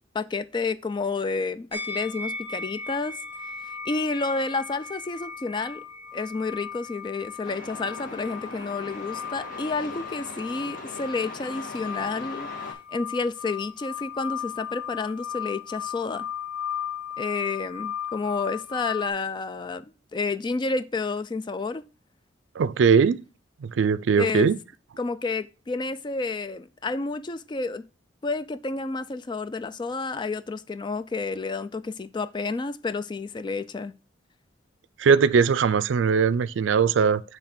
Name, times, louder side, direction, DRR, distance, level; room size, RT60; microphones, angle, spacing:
voice 1, 0.1-3.2 3.6-5.8 6.1-12.5 12.9-16.3 17.2-21.8 24.2-24.5 25.0-27.9 28.2-33.9, left 3 dB, 25° left, 0.3 m, -30 dB
sound 1, 1.7-19.1, left 7 dB, 10° right, 0.6 m, -36 dB
Truck, 7.4-12.7, left 2 dB, 50° left, 1.5 m, -40 dB
voice 2, 22.6-23.2 23.6-24.6 35.0-37.2, right 6 dB, 85° right, 0.4 m, -20 dB
6.6 x 3.3 x 5.8 m
head